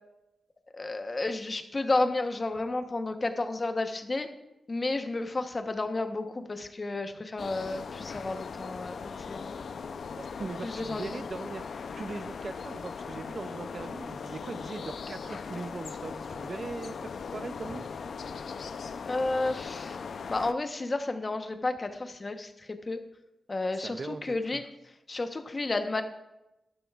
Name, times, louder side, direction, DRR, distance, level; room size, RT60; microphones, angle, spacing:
voice 1, 0.7-4.3 4.7-9.6 10.6-11.2 19.1-20.0 20.3-23.0 23.5-24.6 25.1-26.0, left 2 dB, 35° left, 7 dB, 1.0 m, -31 dB
sound 1, 7.4-20.5, left 5 dB, 75° left, 0.5 m, -39 dB
voice 2, 10.1-11.6 12.0-17.8 23.7-24.6, right 4 dB, 50° right, 13 dB, 0.5 m, -40 dB
13.0 x 12.0 x 2.4 m, 0.94 s
cardioid pair, 80°, 0 cm